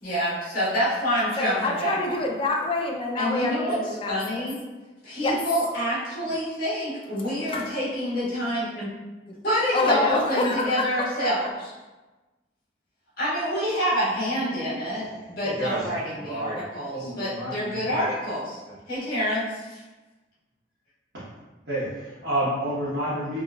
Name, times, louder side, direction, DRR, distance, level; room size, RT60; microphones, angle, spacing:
voice 1, 0.0-2.0 3.2-3.8 4.1-4.5 5.0-8.9 9.4-11.7 13.2-18.6 18.9-19.8, equal, 50° left, -9 dB, 1.4 m, -27 dB
voice 2, 1.4-4.5 5.2-5.4 7.5-7.8 9.7-11.3, left 2 dB, 30° left, 1 dB, 0.3 m, -27 dB
voice 3, 15.4-15.9 16.1-16.6 16.9-17.8 18.7-18.8 21.7-23.4, right 1 dB, 75° right, -13 dB, 1.0 m, -30 dB
3.7 x 2.3 x 2.2 m, 1.2 s
head